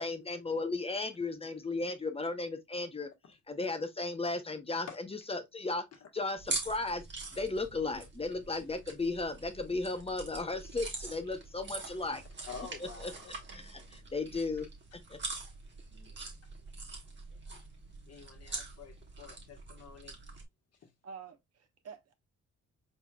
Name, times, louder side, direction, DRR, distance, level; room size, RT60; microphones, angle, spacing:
voice 1, 0.0-3.1 3.5-5.8 6.1-7.0 7.3-12.2 12.8-13.1 13.5-14.7 15.1-15.2, left 3 dB, 20° left, 0.9 m, -35 dB
sound 1, 6.4-20.4, right 3 dB, 40° right, 1.7 m, -44 dB
voice 2, 12.5-13.3 13.8-14.0 15.9-16.3 17.5-17.6 18.1-20.2 20.8-20.9, left 6 dB, 55° left, 1.4 m, -49 dB
voice 3, 21.0-22.1, right 6 dB, 55° right, 1.1 m, -48 dB
4.5 x 4.2 x 2.2 m
cardioid pair, 90°, 30 cm